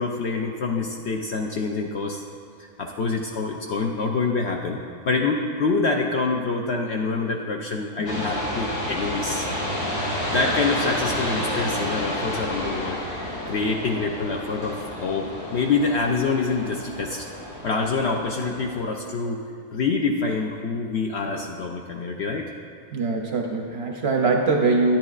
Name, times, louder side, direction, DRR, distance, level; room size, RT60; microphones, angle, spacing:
voice 1, 0.0-2.2 2.6-4.8 5.1-9.5 10.3-13.0 13.3-17.3 17.6-19.4 19.7-22.5, left 4 dB, 65° left, 1 dB, 0.7 m, -26 dB
sound 1, 8.1-18.8, left 1 dB, 85° left, 2.7 m, -30 dB
voice 2, 22.9-25.0, right 3 dB, 60° right, 1 dB, 0.7 m, -22 dB
10.5 x 9.6 x 2.4 m, 2.3 s
omnidirectional pair, 1.5 m